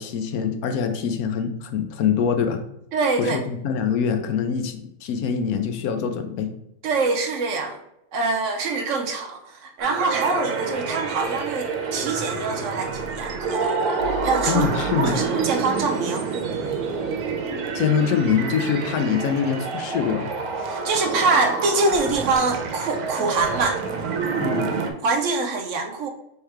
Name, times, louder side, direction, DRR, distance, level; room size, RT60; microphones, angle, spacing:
voice 1, 0.0-2.6 3.2-6.5 14.5-15.2 17.7-20.3 24.4-24.7, left 7 dB, 80° left, 7 dB, 1.1 m, -24 dB
voice 2, 2.9-3.4 6.8-7.8 8.1-13.8 14.2-14.7 15.0-16.3 20.6-23.8 25.0-26.1, right 3 dB, 65° right, 4 dB, 0.8 m, -24 dB
sound 1, 9.8-24.9, right 4 dB, 85° right, 1.2 m, -28 dB
3.5 x 3.3 x 4.4 m, 0.82 s
omnidirectional pair, 1.6 m